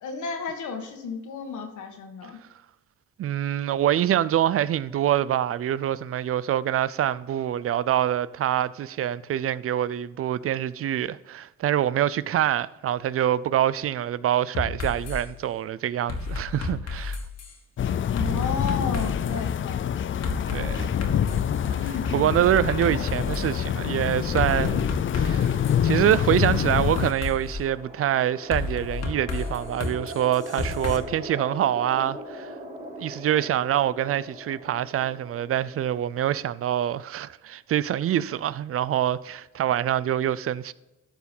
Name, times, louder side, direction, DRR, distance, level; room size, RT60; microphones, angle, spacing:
voice 1, 0.0-2.4 18.1-19.9 21.7-22.1, left 5 dB, 75° left, 1.7 m, -33 dB
voice 2, 3.2-17.2 20.5-20.9 22.1-32.5 33.0-40.7, right 11 dB, 50° right, 0.5 m, -25 dB
sound 1, 14.5-15.2 16.1-17.5 18.2-19.3 20.2-21.5 22.0-23.5 24.4-25.8 26.4-27.6 28.5-31.0, left 4 dB, 60° left, 1.8 m, -31 dB
sound 2, 17.8-27.1, left 9 dB, 40° left, 0.5 m, -26 dB
sound 3, 26.7-36.9, right 1 dB, 25° right, 3.8 m, -41 dB
13.0 x 4.7 x 5.4 m
cardioid pair, 90°, 30 cm